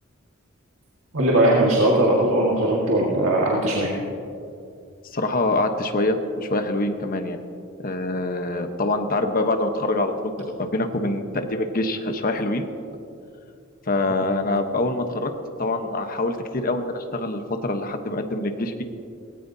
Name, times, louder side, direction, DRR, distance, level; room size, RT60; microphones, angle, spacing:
voice 1, 1.1-3.9, right 1 dB, 80° right, -4 dB, 1.8 m, -19 dB
voice 2, 5.1-7.4 7.8-10.3 10.6-12.7 13.9-15.3 15.6-18.8, left 2 dB, 45° left, 6 dB, 1.1 m, -25 dB
18.5 x 17.0 x 2.8 m, 2.5 s
head